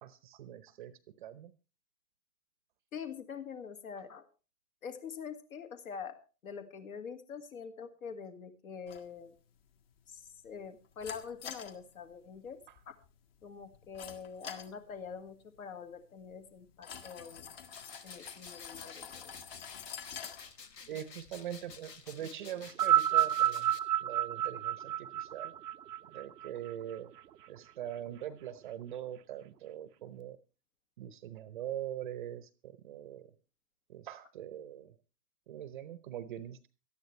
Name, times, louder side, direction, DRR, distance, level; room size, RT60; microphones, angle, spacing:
voice 1, 0.0-0.9 1.2-1.5 20.9-23.7 24.0-25.5 26.1-27.1 27.5-30.4 31.0-33.3 33.9-34.9 35.5-36.7, right 11 dB, 30° right, 14 dB, 0.8 m, -42 dB
voice 2, 2.9-4.3 4.8-9.3 10.1-12.9 13.4-17.6 18.0-19.3, left 6 dB, 55° left, 7 dB, 2.2 m, -45 dB
sound 1, 8.9-22.2, left 8 dB, 35° left, 1.7 m, -50 dB
sound 2, 17.7-23.8, left 5 dB, 85° left, 1.7 m, -52 dB
glockenspiel E phaser underwater, 22.7-27.2 28.1-28.2, right 12 dB, 75° right, 0.7 m, -30 dB
18.0 x 13.0 x 3.2 m, 0.33 s
hypercardioid pair, 140°, 48 cm